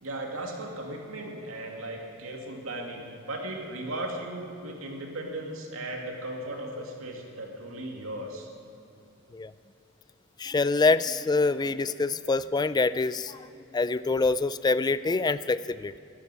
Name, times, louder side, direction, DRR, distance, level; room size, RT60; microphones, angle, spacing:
voice 1, 0.0-8.5, right 1 dB, 90° right, 1 dB, 2.4 m, -37 dB
voice 2, 10.4-13.5 13.7-16.0, left 3 dB, 20° left, 16 dB, 0.3 m, -25 dB
12.0 x 10.0 x 9.6 m, 2.8 s
head